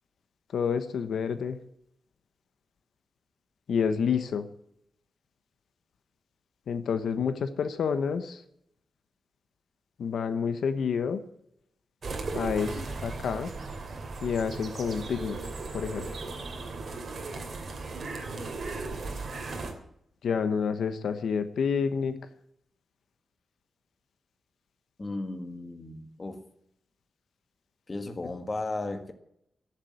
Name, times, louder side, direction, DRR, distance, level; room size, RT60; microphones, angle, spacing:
voice 1, 0.5-1.6 3.7-4.5 6.7-8.4 10.0-11.2 12.3-13.5 14.2-15.4 15.7-16.0 20.2-22.1, left 6 dB, 85° left, 10 dB, 1.1 m, -28 dB
sound 1, 12.0-19.7, right 3 dB, 50° right, 2.7 m, -36 dB
voice 2, 25.0-26.4 27.9-29.1, left 2 dB, 25° left, 7 dB, 1.6 m, -35 dB
14.5 x 7.4 x 8.8 m, 0.74 s
wide cardioid pair, 135°, 0 cm